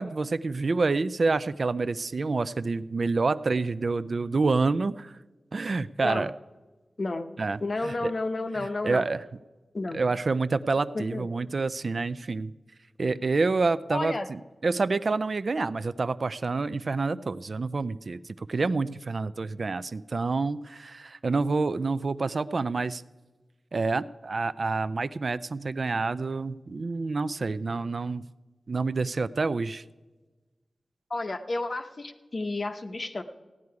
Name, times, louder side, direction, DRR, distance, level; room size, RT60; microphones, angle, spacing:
voice 1, 0.0-5.1 5.5-6.3 7.4-8.1 8.8-9.2 9.9-12.5 13.0-23.0 23.7-28.2 28.7-29.8, right 3 dB, 55° right, 14 dB, 0.3 m, -28 dB
voice 2, 7.6-9.0 9.7-10.0 10.9-11.3 13.9-14.3 31.1-33.2, left 2 dB, 45° left, 7 dB, 0.8 m, -31 dB
16.0 x 9.4 x 4.8 m, 1.2 s
wide cardioid pair, 100°, 0 cm